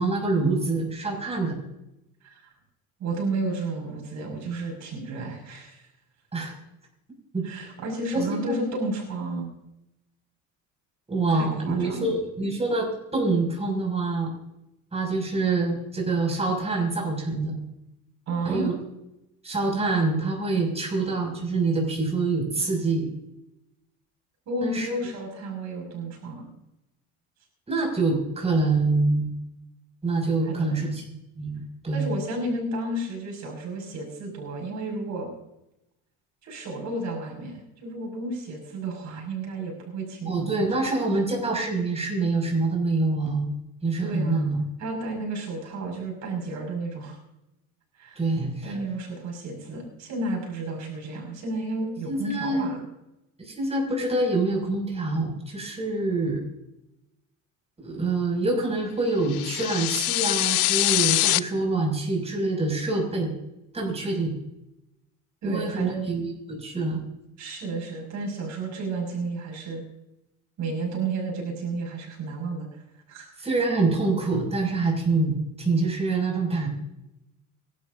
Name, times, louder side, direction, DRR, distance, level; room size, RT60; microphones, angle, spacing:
voice 1, 0.0-1.5 6.3-6.5 7.3-7.4 8.1-8.6 11.1-14.3 14.9-17.5 18.4-18.7 19.4-23.1 24.6-24.9 27.7-29.4 30.0-32.1 40.3-43.5 43.8-44.7 48.1-48.8 52.1-52.8 53.4-56.4 57.8-63.3 63.7-64.3 65.4-67.0 73.4-76.7, right 3 dB, 20° right, 0 dB, 6.4 m, -26 dB
voice 2, 3.0-5.8 7.4-9.5 11.3-12.1 18.3-18.7 24.5-26.5 30.5-30.9 31.9-35.3 36.4-40.3 44.0-44.5 44.8-47.2 48.0-48.2 48.6-52.8 65.4-66.1 67.4-69.8 70.6-72.7 73.1-73.3, right 2 dB, 55° right, 1 dB, 6.1 m, -32 dB
sound 1, 59.3-61.4, left 20 dB, 80° left, 0.6 m, -23 dB
26.0 x 12.5 x 2.7 m, 0.88 s
cardioid pair, 120°, 34 cm